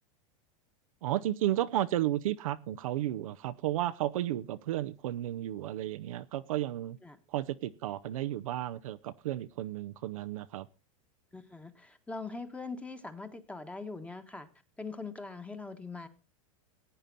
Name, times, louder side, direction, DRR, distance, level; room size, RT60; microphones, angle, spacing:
voice 1, 1.0-7.0 7.3-10.7, right 13 dB, 75° right, 0.7 m, -33 dB
voice 2, 11.3-14.5 14.8-16.1, left 3 dB, 5° left, 1.5 m, -42 dB
15.5 x 9.1 x 4.1 m
hypercardioid pair, 120°, 17 cm